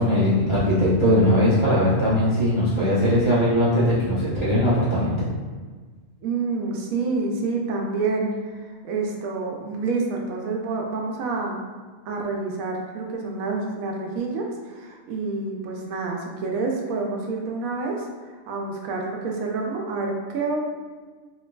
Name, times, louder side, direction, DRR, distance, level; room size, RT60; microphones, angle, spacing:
voice 1, 0.0-5.3, equal, 35° right, -10 dB, 0.4 m, -20 dB
voice 2, 6.2-11.7 12.0-18.1 18.5-20.6, right 3 dB, 75° right, 0 dB, 1.0 m, -28 dB
3.1 x 3.1 x 2.2 m, 1.4 s
omnidirectional pair, 1.5 m